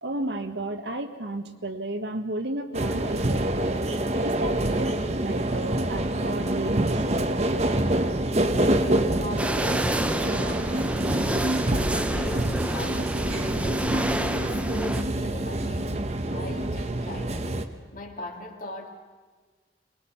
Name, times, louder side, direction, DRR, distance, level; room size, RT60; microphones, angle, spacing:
voice 1, 0.0-3.8 4.2-7.7, right 2 dB, 70° right, 6 dB, 1.5 m, -33 dB
sound 1, 2.7-17.7, right 1 dB, 35° right, 1.0 m, -26 dB
voice 2, 9.1-11.7 11.9-17.6 17.9-18.9, left 1 dB, 45° left, 2 dB, 2.3 m, -40 dB
sound 2, 9.4-15.0, right 1 dB, 5° right, 0.6 m, -30 dB
sound 3, 10.0-13.0 13.3-14.1, equal, 85° left, 3.0 m, -45 dB
23.0 x 21.0 x 5.8 m, 1.4 s
head